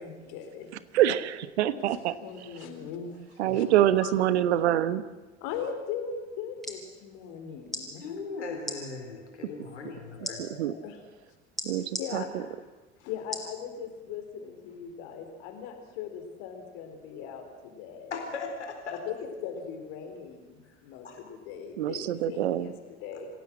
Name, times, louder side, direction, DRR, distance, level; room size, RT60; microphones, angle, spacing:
voice 1, 0.0-0.7 1.7-3.7 4.0-4.1 5.4-8.1 9.4-9.6 10.2-11.0 12.0-12.6 13.0-18.1 18.9-23.3, left 7 dB, 60° left, 5 dB, 4.2 m, -40 dB
voice 2, 0.9-2.1 3.4-5.0 10.6-10.7 11.6-11.8 12.1-12.2 21.8-22.7, right 12 dB, 70° right, 15 dB, 1.2 m, -25 dB
sound 1, 6.4-6.8 7.7-7.9 8.6-8.8 10.2-10.4 11.6-12.1 13.3-13.5 14.1-14.2, left 1 dB, ahead, 5.3 m, -35 dB
voice 3, 8.0-10.4 18.1-19.0 21.0-21.2, left 4 dB, 80° left, 4 dB, 4.2 m, -38 dB
26.5 x 16.0 x 7.6 m, 1.2 s
figure-of-eight pair, 70°, 34 cm